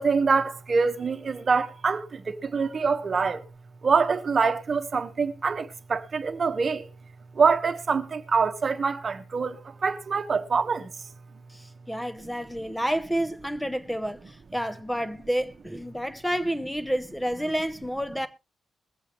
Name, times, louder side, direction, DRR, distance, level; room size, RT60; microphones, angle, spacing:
voice 1, 0.0-3.4 3.8-6.9 7.3-10.9, right 5 dB, 35° right, 1.4 m, -25 dB
voice 2, 11.5-18.3, equal, 5° left, 0.9 m, -29 dB
22.0 x 8.0 x 3.1 m
wide cardioid pair, 150°, 0 cm